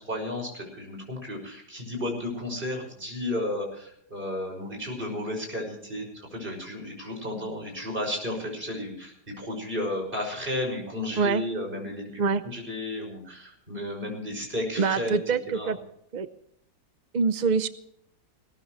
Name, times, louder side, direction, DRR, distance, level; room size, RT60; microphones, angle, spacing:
voice 1, 0.0-15.2 15.5-15.7, left 1 dB, 30° right, 1 dB, 6.2 m, -33 dB
voice 2, 14.8-15.8 16.1-16.3 17.1-17.7, right 5 dB, 60° right, 12 dB, 0.4 m, -24 dB
20.5 x 18.0 x 3.2 m, 0.71 s
omnidirectional pair, 1.8 m